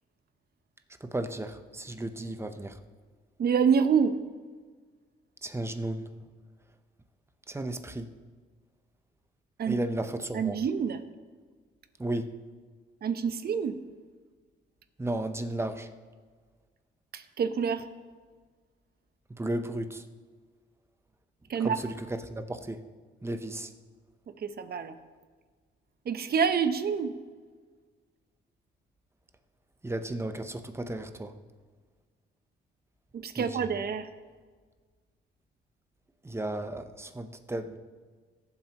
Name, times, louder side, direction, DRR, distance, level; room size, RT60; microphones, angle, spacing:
voice 1, 1.1-2.7 5.4-6.0 7.5-8.1 9.7-10.6 12.0-12.3 15.0-15.9 19.4-20.0 21.6-22.8 23.2-23.7 29.8-31.3 33.4-33.6 36.2-37.8, right 1 dB, 15° right, 8 dB, 0.8 m, -34 dB
voice 2, 3.4-4.2 9.6-9.8 10.3-11.0 13.0-13.7 17.1-17.8 21.5-21.8 24.4-24.9 26.1-27.1 33.1-34.1, right 6 dB, 50° right, 10 dB, 0.9 m, -27 dB
17.5 x 7.5 x 3.0 m, 1.5 s
cardioid pair, 90°, 20 cm